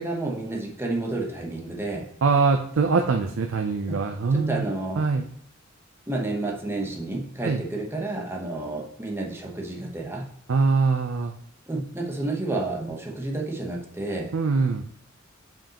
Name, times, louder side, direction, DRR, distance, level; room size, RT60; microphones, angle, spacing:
voice 1, 0.0-2.1 3.9-4.0 4.3-5.0 6.1-10.3 11.7-14.3, right 2 dB, 10° right, -1 dB, 0.9 m, -30 dB
voice 2, 2.2-4.7 5.0-5.3 7.4-7.6 10.5-11.3 14.3-14.8, right 4 dB, 90° right, 5 dB, 0.5 m, -23 dB
7.2 x 5.3 x 2.9 m, 0.67 s
head